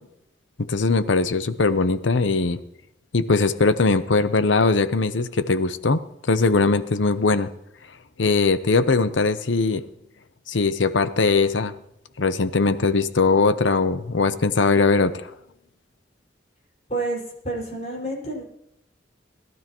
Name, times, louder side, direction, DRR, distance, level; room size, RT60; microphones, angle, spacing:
voice 1, 0.6-2.6 3.1-6.0 6.3-7.5 8.2-9.8 10.5-11.7 12.2-15.3, left 3 dB, 85° left, 13 dB, 0.8 m, -20 dB
voice 2, 16.9-18.4, right 2 dB, 35° left, -3 dB, 5.3 m, -29 dB
20.0 x 12.5 x 3.0 m, 0.82 s
head